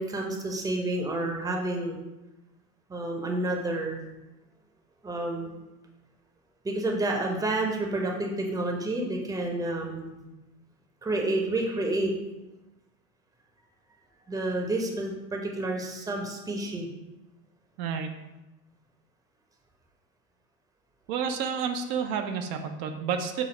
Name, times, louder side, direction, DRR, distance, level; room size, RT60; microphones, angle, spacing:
voice 1, 0.0-2.0 2.9-4.1 5.0-5.5 6.6-10.2 11.0-12.1 14.3-16.9, right 2 dB, 10° right, 1 dB, 0.7 m, -29 dB
voice 2, 17.8-18.1 21.1-23.4, right 6 dB, 60° right, 5 dB, 0.6 m, -30 dB
6.0 x 2.0 x 4.4 m, 1.0 s
hypercardioid pair, 85°, 48 cm